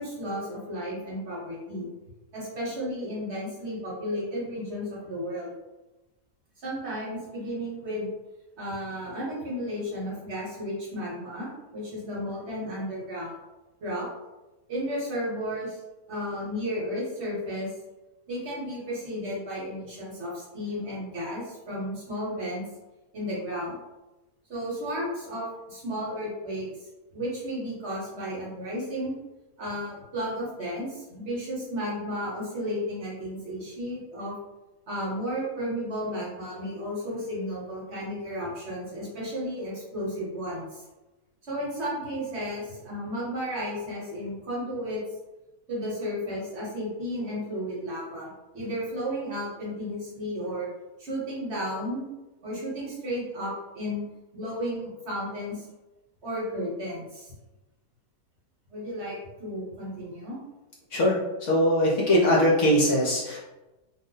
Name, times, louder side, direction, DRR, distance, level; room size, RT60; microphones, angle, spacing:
voice 1, 0.0-1.9 2.3-5.5 6.6-8.1 8.6-13.3 13.8-14.1 14.7-15.8 16.1-17.7 18.3-22.6 23.1-23.8 24.5-26.7 27.1-29.1 29.6-34.3 34.9-40.8 41.5-45.0 45.7-50.7 51.0-52.1 52.4-54.0 54.3-55.6 56.2-57.3 58.7-60.4, equal, 50° right, -6 dB, 1.1 m, -33 dB
voice 2, 61.5-63.4, equal, 60° left, -4 dB, 0.9 m, -21 dB
2.7 x 2.1 x 3.7 m, 1.1 s
omnidirectional pair, 1.6 m